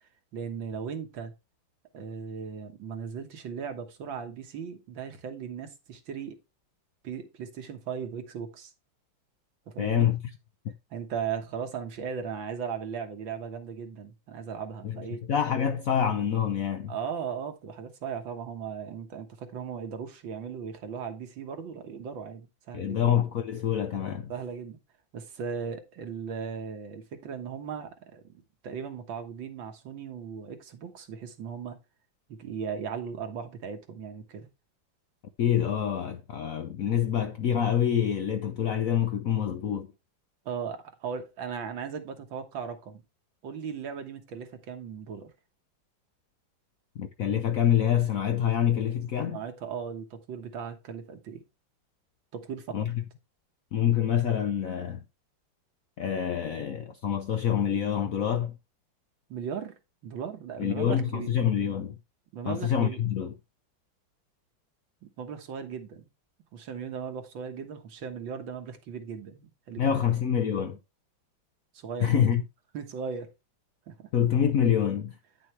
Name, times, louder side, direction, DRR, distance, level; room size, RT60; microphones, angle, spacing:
voice 1, 0.3-1.3 1.9-6.4 7.0-8.7 9.7-10.1 10.9-15.2 16.9-23.0 24.3-24.8 25.1-28.3 28.6-31.8 32.3-34.5 40.5-43.0 43.4-45.3 49.2-51.4 52.3-52.9 59.3-59.8 60.0-61.3 62.3-63.0 65.0-66.1 66.5-70.0 71.7-72.3 72.7-73.3 73.9-74.1, right 6 dB, 75° right, 2.0 m, -37 dB
voice 2, 9.8-10.2 10.6-10.7 14.8-15.0 15.3-16.9 22.7-24.3 35.4-39.9 47.0-49.4 52.7-53.0 53.7-55.0 56.0-58.5 60.6-61.9 62.4-63.3 69.8-70.8 72.0-72.4 74.1-75.1, left 9 dB, 65° left, 0.9 m, -26 dB
9.8 x 6.3 x 3.2 m
omnidirectional pair, 2.2 m